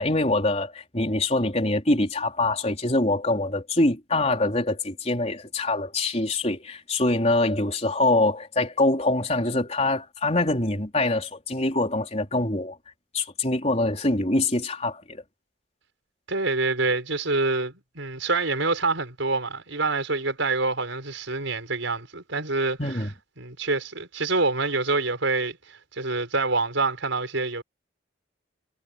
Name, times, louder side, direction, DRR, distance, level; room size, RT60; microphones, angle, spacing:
voice 1, 0.0-12.8 13.1-15.2 22.8-23.1, left 2 dB, 35° left, 4.2 m, -24 dB
voice 2, 16.3-22.8 23.4-27.6, right 3 dB, 75° right, 5.2 m, -26 dB
head